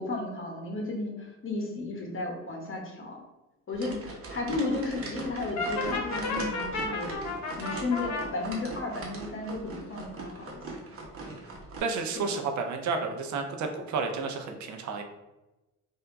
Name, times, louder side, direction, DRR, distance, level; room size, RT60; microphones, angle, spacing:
voice 1, 0.0-3.2 3.7-7.2 7.6-10.5 12.2-12.4, left 2 dB, 45° left, 0 dB, 1.3 m, -34 dB
sound 1, 3.7-11.8, right 3 dB, 45° right, 1.2 m, -40 dB
Brass instrument, 5.6-8.3, left 3 dB, 70° left, 0.9 m, -32 dB
voice 2, 11.8-15.0, right 4 dB, 70° right, 4 dB, 0.7 m, -31 dB
3.5 x 2.7 x 4.5 m, 1.0 s
cardioid pair, 90°, 30 cm